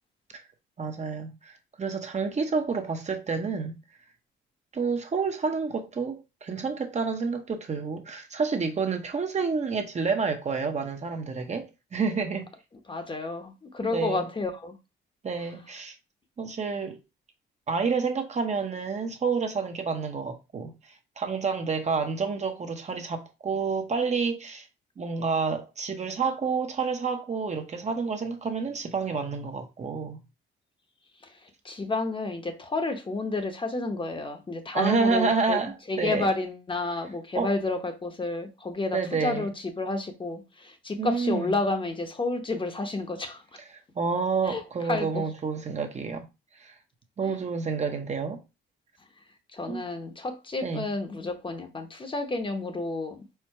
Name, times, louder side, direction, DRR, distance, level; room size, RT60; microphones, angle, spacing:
voice 1, 0.8-3.8 4.7-12.5 13.9-14.3 15.2-16.0 16.4-17.0 17.7-24.7 25.0-30.2 34.7-36.3 37.3-37.5 38.9-39.5 41.0-41.5 44.0-46.3 46.6-46.7 47.2-48.4 49.7-49.8 50.6-50.8, right 5 dB, 35° right, 0.8 m, -29 dB
voice 2, 12.9-14.7 31.2-35.6 35.9-43.6 44.4-44.6 44.9-45.3 47.2-47.4 49.5-53.2, left 3 dB, 25° left, 0.8 m, -31 dB
4.5 x 2.1 x 4.6 m
cardioid pair, 90°, 20 cm